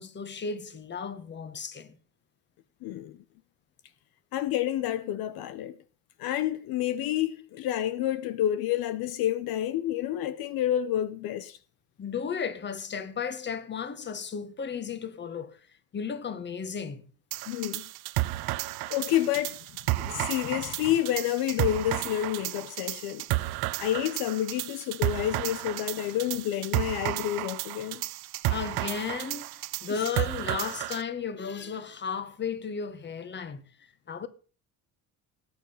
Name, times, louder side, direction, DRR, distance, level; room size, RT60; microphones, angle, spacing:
voice 1, 0.0-2.0 12.0-15.6 15.9-17.0 28.5-33.6 34.1-34.3, left 6 dB, 30° left, 1.8 m, -34 dB
voice 2, 2.8-3.2 4.3-5.8 6.2-11.6 17.5-17.9 18.9-19.6 20.0-23.2 23.8-28.0 30.0-30.1, left 12 dB, 70° left, 1.1 m, -29 dB
sound 1, 17.3-31.0, right 18 dB, 75° right, 1.0 m, -32 dB
19.0 x 8.9 x 5.7 m
cardioid pair, 125°, 37 cm